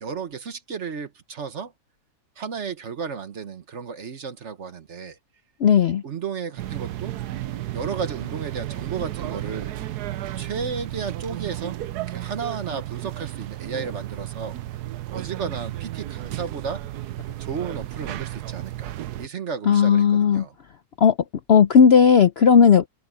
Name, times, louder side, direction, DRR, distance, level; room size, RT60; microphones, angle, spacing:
voice 1, 0.0-1.7 2.4-5.2 6.0-7.1 7.7-9.8 10.4-11.8 12.1-14.6 15.1-16.8 17.4-20.5, right 6 dB, 50° right, 1.3 m, -33 dB
voice 2, 5.6-6.0 19.7-20.4 21.0-21.1 21.5-22.9, left 7 dB, 60° left, 0.7 m, -15 dB
sound 1, 6.6-19.3, right 14 dB, 85° right, 1.3 m, -33 dB
omnidirectional pair, 1.7 m